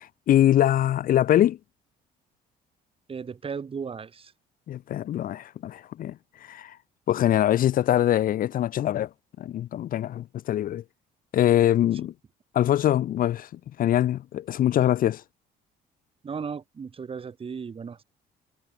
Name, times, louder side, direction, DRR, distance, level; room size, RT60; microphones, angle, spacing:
voice 1, 0.0-1.6 4.7-6.8 7.1-9.1 9.4-10.8 11.3-12.1 12.5-15.2, left 12 dB, 55° left, 0.9 m, -23 dB
voice 2, 3.1-4.3 16.2-18.0, right 6 dB, 35° right, 5.1 m, -35 dB
cardioid pair, 110°, 17 cm